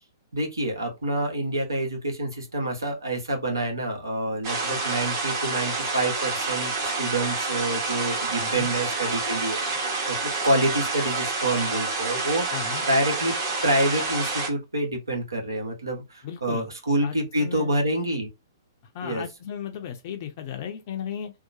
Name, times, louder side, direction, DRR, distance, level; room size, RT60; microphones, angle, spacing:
voice 1, 0.3-9.6 10.1-12.5 12.9-13.3 13.6-18.3 19.0-19.2, right 1 dB, 75° right, 1.1 m, -27 dB
sound 1, 4.4-14.5, right 3 dB, 35° right, 1.0 m, -28 dB
voice 2, 8.4-8.7 12.5-12.8 16.2-16.7 17.0-17.1 17.4-17.7 18.9-21.3, left 8 dB, 40° left, 0.5 m, -35 dB
2.8 x 2.1 x 2.6 m
figure-of-eight pair, 115°, 2 cm